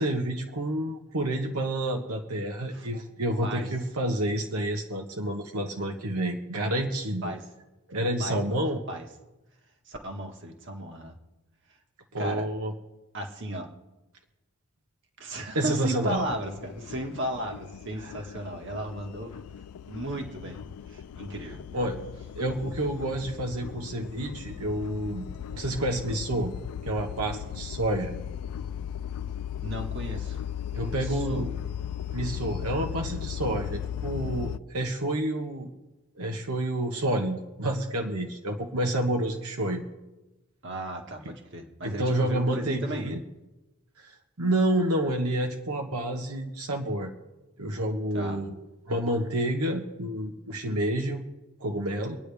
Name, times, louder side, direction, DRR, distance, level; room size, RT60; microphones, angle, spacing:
voice 1, 0.0-7.3 7.9-8.8 12.1-12.7 15.5-16.3 18.0-18.1 21.7-22.0 22.3-25.3 25.5-26.5 26.8-28.1 30.7-31.6 32.1-35.7 36.2-39.8 41.2-41.3 41.8-43.2 44.0-47.1 47.6-48.5 48.9-51.2 51.6-52.2, right 1 dB, 85° right, 2 dB, 1.2 m, -29 dB
voice 2, 8.2-8.6 8.9-9.1 9.9-11.1 12.2-12.5 13.1-13.7 15.2-19.3 19.9-20.6 20.9-21.6 29.6-30.4 30.8-31.4 40.6-43.2 48.1-48.4, right 1 dB, 55° right, 3 dB, 1.7 m, -35 dB
sound 1, 16.1-34.6, left 9 dB, 85° left, 0.4 m, -37 dB
25.5 x 9.7 x 3.5 m, 1.1 s
head